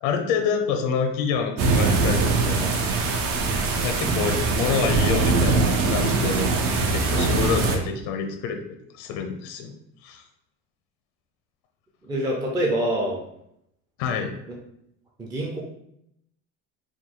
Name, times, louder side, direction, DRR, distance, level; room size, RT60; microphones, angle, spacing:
voice 1, 0.0-2.8 3.8-6.5 6.9-8.6 8.9-9.7 10.0-10.2 14.0-14.3, left 6 dB, 85° left, 5 dB, 0.7 m, -27 dB
sound 1, 1.6-7.8, right 3 dB, 75° right, 0.8 m, -22 dB
voice 2, 12.0-13.2 14.5-14.6 15.2-15.6, right 1 dB, 10° right, -2 dB, 0.3 m, -25 dB
4.8 x 2.3 x 3.7 m, 0.76 s
cardioid pair, 160°, 34 cm